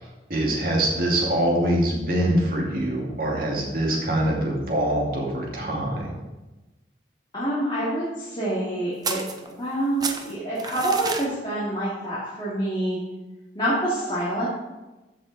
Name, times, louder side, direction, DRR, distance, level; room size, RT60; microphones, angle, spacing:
voice 1, 0.3-6.1, right 1 dB, 55° right, -2 dB, 2.4 m, -24 dB
voice 2, 7.3-13.0 13.5-14.5, right 1 dB, 25° left, -9 dB, 2.6 m, -27 dB
sound 1, 9.0-9.8 10.0-11.3, right 5 dB, 20° right, 0.7 m, -30 dB
14.0 x 5.4 x 4.3 m, 1.1 s
head